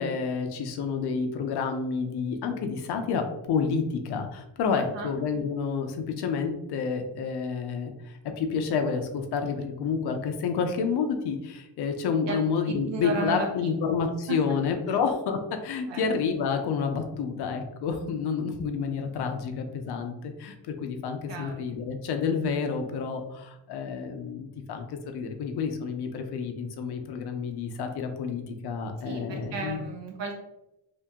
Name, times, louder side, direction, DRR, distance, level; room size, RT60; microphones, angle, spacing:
voice 1, 0.0-29.8, left 5 dB, 60° left, 5 dB, 0.6 m, -29 dB
voice 2, 4.7-5.1 12.3-13.7 14.3-14.4 14.9-15.0 15.9-16.0 21.3-21.6 29.0-30.4, right 3 dB, 65° right, 1 dB, 0.8 m, -34 dB
2.8 x 2.8 x 3.5 m, 0.90 s
cardioid pair, 155°, 46 cm